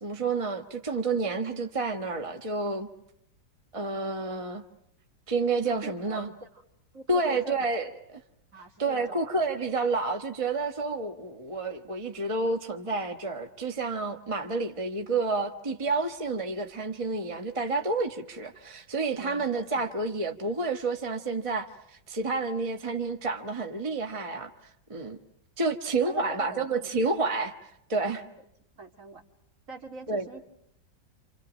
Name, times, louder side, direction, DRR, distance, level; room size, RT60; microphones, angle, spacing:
voice 1, 0.0-2.9 3.7-4.6 5.3-6.3 7.1-8.2 8.8-24.5 24.9-25.2 25.6-27.5 27.9-28.2 30.1-30.3, right 3 dB, 20° right, 1.2 m, -29 dB
voice 2, 5.7-6.6 6.9-7.7 8.5-9.3 19.1-19.9 26.0-26.9 28.3-28.4 28.8-29.2 29.7-30.4, right 2 dB, 45° right, 2.7 m, -44 dB
29.5 x 27.5 x 6.2 m
omnidirectional pair, 2.0 m